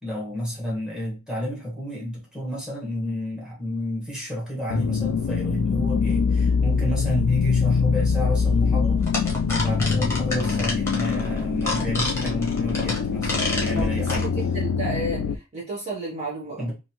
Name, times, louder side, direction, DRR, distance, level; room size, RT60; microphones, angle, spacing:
voice 1, 0.0-9.0 9.5-14.3 16.6-16.7, left 1 dB, 5° right, 1.3 m, -30 dB
sound 1, 4.7-15.4, left 5 dB, 75° left, 0.3 m, -24 dB
sound 2, 9.0-14.3, left 2 dB, 10° left, 1.0 m, -29 dB
voice 2, 13.7-14.1 14.5-16.6, right 2 dB, 30° right, 0.8 m, -32 dB
3.0 x 2.6 x 2.9 m
head